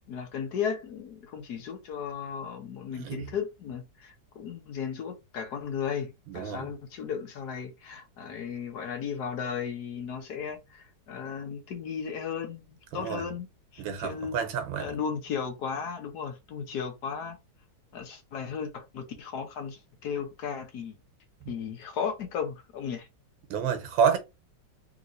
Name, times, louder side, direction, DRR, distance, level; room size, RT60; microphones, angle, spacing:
voice 1, 0.0-13.5 13.7-14.4 14.8-17.4 17.9-20.9 21.5-23.1, left 7 dB, 65° left, 1.3 m, -35 dB
voice 2, 2.9-3.3 6.3-6.7 12.9-13.2 13.8-14.9 23.5-24.2, right 7 dB, 90° right, 1.6 m, -29 dB
3.6 x 3.0 x 2.6 m
omnidirectional pair, 2.0 m